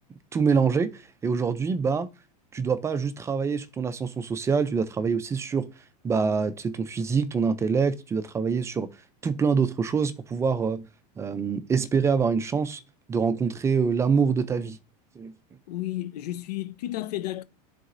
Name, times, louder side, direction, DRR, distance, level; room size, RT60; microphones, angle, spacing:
voice 1, 0.3-2.1 2.5-5.7 6.0-8.9 9.2-10.9 11.2-12.8 13.1-14.8 15.2-15.3, right 5 dB, 15° right, 0.4 m, -25 dB
voice 2, 15.7-17.4, left 15 dB, 90° left, 0.7 m, -32 dB
10.5 x 4.0 x 2.5 m
supercardioid pair, 145°, 20 cm